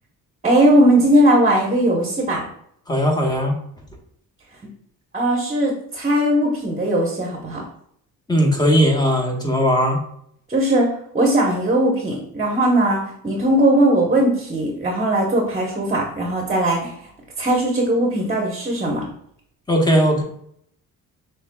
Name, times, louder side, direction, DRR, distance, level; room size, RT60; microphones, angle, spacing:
voice 1, 0.4-2.5 5.1-7.6 10.5-10.9 11.1-16.9 17.4-19.1, right 1 dB, 20° right, -1 dB, 1.0 m, -19 dB
voice 2, 2.9-3.5 8.3-10.0 19.7-20.2, equal, 10° left, 1 dB, 1.2 m, -18 dB
6.1 x 3.2 x 2.3 m, 0.68 s
cardioid pair, 85°, 35 cm